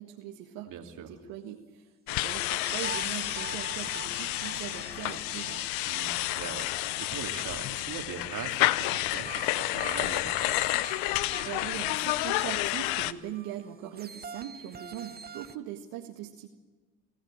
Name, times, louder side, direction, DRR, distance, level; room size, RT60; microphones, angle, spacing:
voice 1, 0.0-5.6 11.5-16.5, right 11 dB, 75° right, 2 dB, 1.9 m, -41 dB
voice 2, 0.7-1.1 5.9-10.6, right 8 dB, 55° right, 4 dB, 3.0 m, -41 dB
sound 1, 2.1-13.1, left 18 dB, 80° left, 0.9 m, -30 dB
sound 2, 2.5-8.1 8.9-15.6, right 6 dB, 25° right, 1.2 m, -46 dB
26.0 x 15.5 x 9.0 m, 1.3 s
supercardioid pair, 75°, 35 cm